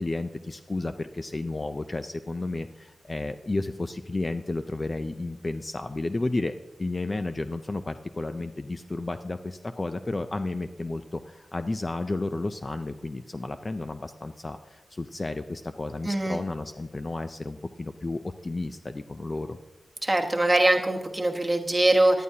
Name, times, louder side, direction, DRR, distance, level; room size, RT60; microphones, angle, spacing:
voice 1, 0.0-19.6, left 2 dB, 25° left, 9 dB, 0.4 m, -32 dB
voice 2, 16.0-16.4 20.0-22.2, right 1 dB, 15° right, 3 dB, 1.1 m, -22 dB
18.0 x 11.0 x 2.8 m, 1.1 s
wide cardioid pair, 165°, 0 cm